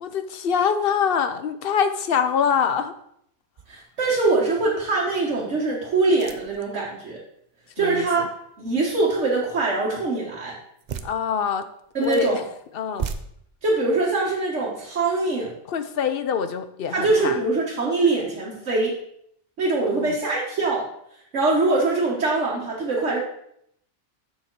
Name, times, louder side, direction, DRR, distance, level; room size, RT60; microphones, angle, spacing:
voice 1, 0.0-2.9 7.8-8.3 11.0-11.7 12.0-12.4 12.7-13.1 15.7-17.4 19.9-20.2, left 7 dB, 60° left, 10 dB, 0.8 m, -24 dB
sound 1, 3.6-4.0 4.5-4.6 6.1-6.7 10.8-11.1 11.8-12.3 12.8-13.2, right 7 dB, 50° right, 0.6 m, -34 dB
voice 2, 3.7-7.2 7.8-8.3 8.6-10.5 11.9-12.4 13.6-15.5 16.9-19.0 19.6-20.9 21.3-23.2, right 3 dB, 80° right, -5 dB, 1.7 m, -23 dB
7.2 x 6.5 x 4.6 m, 0.71 s
omnidirectional pair, 1.2 m